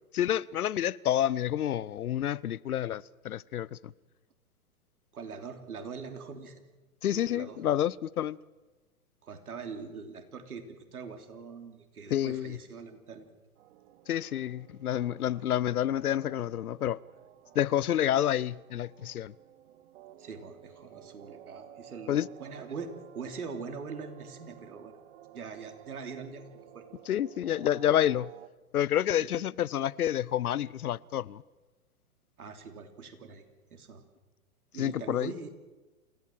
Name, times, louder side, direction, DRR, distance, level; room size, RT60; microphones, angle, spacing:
voice 1, 0.1-3.9 7.0-8.4 12.1-12.6 14.1-17.0 17.5-19.3 22.1-22.3 27.1-28.3 28.7-31.4 34.8-35.3, left 11 dB, 85° left, 0.7 m, -29 dB
voice 2, 5.1-6.6 7.1-7.7 9.2-13.3 20.2-25.0 25.3-26.4 26.7-26.9 29.2-29.3 32.4-33.5 33.7-34.0 34.7-35.5, right 5 dB, 85° right, 3.4 m, -42 dB
sound 1, 13.6-28.5, right 12 dB, 50° right, 1.6 m, -53 dB
28.0 x 17.0 x 7.5 m
hypercardioid pair, 120°, 43 cm